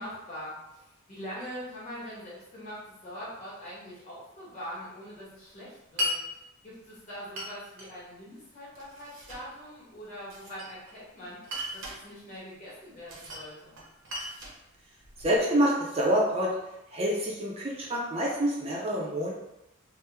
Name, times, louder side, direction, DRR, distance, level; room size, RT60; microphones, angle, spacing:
voice 1, 0.0-6.2 6.6-13.8, equal, 35° left, -8 dB, 1.2 m, -43 dB
Glass, 6.0-6.2 7.4-7.9 8.7-9.5 10.3-11.0 11.4-12.0 13.1-13.5 13.8-15.4, left 1 dB, 70° right, 0.8 m, -36 dB
voice 2, 15.2-16.5 16.9-19.3, equal, 30° right, -4 dB, 0.4 m, -27 dB
3.0 x 2.0 x 3.3 m, 0.90 s
head